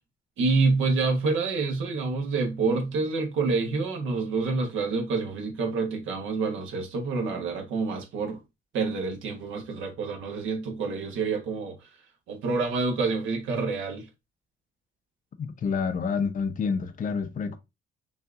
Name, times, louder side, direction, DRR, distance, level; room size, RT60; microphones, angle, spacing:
voice 1, 0.4-8.4 8.7-11.8 12.3-14.0, right 4 dB, 80° right, 1.1 m, -27 dB
voice 2, 15.4-17.6, left 5 dB, 40° left, 0.6 m, -28 dB
5.4 x 2.5 x 2.4 m
cardioid pair, 90°, 20 cm